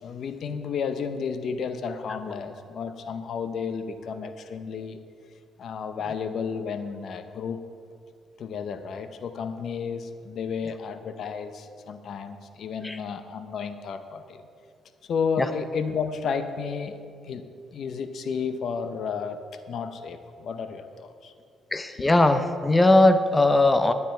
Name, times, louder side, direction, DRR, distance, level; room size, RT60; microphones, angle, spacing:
voice 1, 0.0-5.0 5.6-7.6 8.4-14.4 15.1-17.4 17.7-19.4 19.7-21.3, left 6 dB, 65° left, 9 dB, 0.7 m, -32 dB
voice 2, 21.7-23.9, left 2 dB, 20° left, 9 dB, 0.6 m, -19 dB
11.5 x 9.6 x 4.5 m, 2.3 s
cardioid pair, 90°, 0 cm